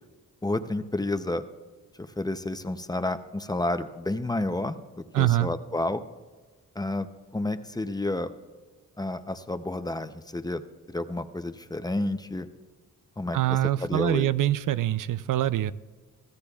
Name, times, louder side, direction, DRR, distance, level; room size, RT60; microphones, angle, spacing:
voice 1, 0.4-1.4 2.0-6.0 6.8-7.1 7.3-8.3 9.0-10.6 10.9-12.5 13.2-14.3, left 2 dB, 10° left, 9 dB, 0.6 m, -30 dB
voice 2, 5.1-5.5 13.3-15.7, right 13 dB, 80° right, 15 dB, 0.5 m, -24 dB
24.0 x 15.5 x 2.4 m, 1.4 s
wide cardioid pair, 115°, 31 cm